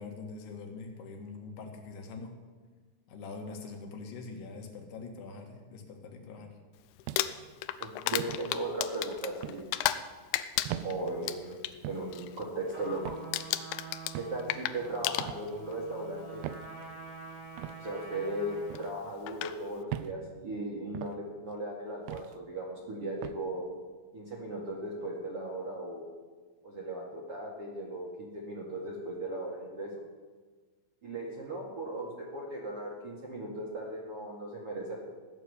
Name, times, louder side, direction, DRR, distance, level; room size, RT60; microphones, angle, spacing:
voice 1, 0.0-2.4 3.1-6.5, left 4 dB, 65° left, 3 dB, 3.4 m, -43 dB
Crumpling crinkling, 7.0-10.1 10.3-11.7 12.1-12.4 12.7-13.0 13.3-15.7 16.7-16.8 18.8-18.9 19.3-19.6, left 14 dB, 80° left, 2.7 m, -33 dB
sound 1, 7.1-7.5 8.2-8.5 9.4-9.7 10.7-10.9 11.8-12.1 13.1-13.3 14.1-14.4 15.2-15.5 16.4-16.7 17.6-17.8 18.7-18.9 19.9-20.2 20.9-21.2 22.1-22.3 23.2-23.4, right 13 dB, 80° right, 3.0 m, -39 dB
voice 2, 7.8-9.7 10.7-13.2 14.2-16.4 17.8-23.7 24.1-26.1 26.6-29.9 31.0-35.0, right 1 dB, 50° right, -3 dB, 1.7 m, -37 dB
Trumpet, 12.7-19.0, right 4 dB, 25° right, 1.6 m, -47 dB
16.5 x 6.9 x 9.8 m, 1.4 s
omnidirectional pair, 5.7 m